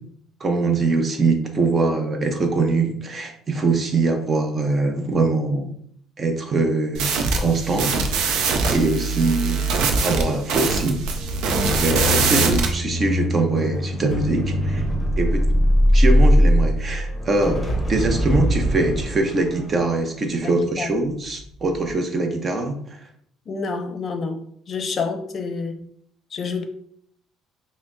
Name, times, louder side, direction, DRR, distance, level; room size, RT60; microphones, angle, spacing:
voice 1, 0.4-5.7 6.2-7.1 7.4-9.6 10.0-11.0 11.8-14.8 15.2-15.4 15.9-17.6 17.9-23.0, right 3 dB, 35° right, 4 dB, 0.7 m, -23 dB
sound 1, 6.9-12.7, right 4 dB, 80° right, 0.5 m, -22 dB
sound 2, 11.1-21.3 21.6-21.9, equal, 15° left, 0.8 m, -21 dB
voice 2, 20.4-20.9 23.5-24.4 24.7-25.8 26.3-26.6, left 4 dB, 45° left, 6 dB, 0.6 m, -28 dB
5.5 x 2.0 x 2.6 m, 0.66 s
cardioid pair, 100°, 0 cm